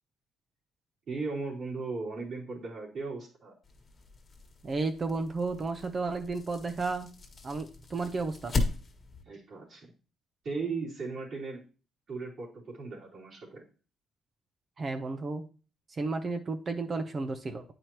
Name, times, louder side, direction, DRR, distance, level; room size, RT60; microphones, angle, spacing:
voice 1, 1.1-3.5 9.2-9.9 10.4-11.6 12.1-13.6, right 4 dB, 60° right, -6 dB, 3.2 m, -37 dB
sound 1, 3.6-9.2, left 3 dB, 35° left, 1.5 m, -37 dB
voice 2, 4.6-7.1 7.4-8.6 14.8-15.4 15.9-17.6, right 3 dB, 40° right, 7 dB, 0.7 m, -33 dB
8.8 x 4.9 x 3.0 m, 0.36 s
cardioid pair, 90°, 0 cm